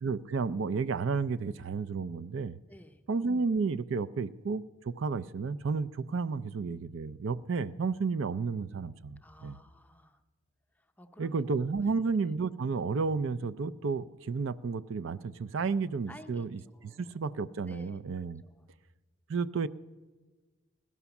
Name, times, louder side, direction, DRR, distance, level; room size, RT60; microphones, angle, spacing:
voice 1, 0.0-2.6 3.1-9.6 11.2-16.6 17.0-18.4 19.3-19.7, right 4 dB, 55° right, 14 dB, 0.4 m, -32 dB
voice 2, 2.7-3.0 9.2-10.2 10.7-11.4 11.8-12.0 15.9-17.1 17.7-18.7, left 1 dB, 5° left, 6 dB, 0.7 m, -54 dB
17.0 x 12.0 x 7.1 m, 1.3 s
head